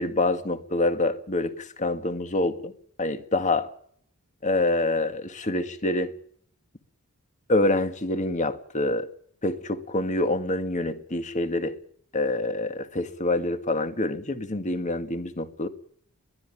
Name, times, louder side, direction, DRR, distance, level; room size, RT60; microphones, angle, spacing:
voice 1, 0.0-2.7 3.0-3.7 4.4-6.1 7.5-9.1 9.4-11.8 12.1-15.7, left 2 dB, 35° left, 1.9 m, -26 dB
21.5 x 13.5 x 10.0 m
head